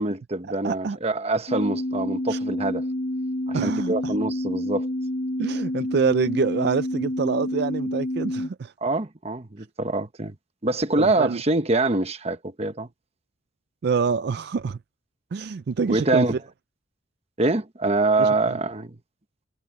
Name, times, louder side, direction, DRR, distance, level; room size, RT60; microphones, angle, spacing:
voice 1, 0.0-2.8 3.5-4.9 8.8-10.3 10.6-12.9 15.9-16.4 17.4-19.0, right 2 dB, 35° right, 1.1 m, -24 dB
voice 2, 0.6-1.0 2.3-2.4 3.5-4.1 5.4-8.7 11.0-11.4 13.8-14.8 15.3-16.3 18.2-18.6, right 5 dB, 60° right, 0.4 m, -26 dB
sound 1, 1.5-8.5, left 1 dB, 55° left, 1.2 m, -28 dB
head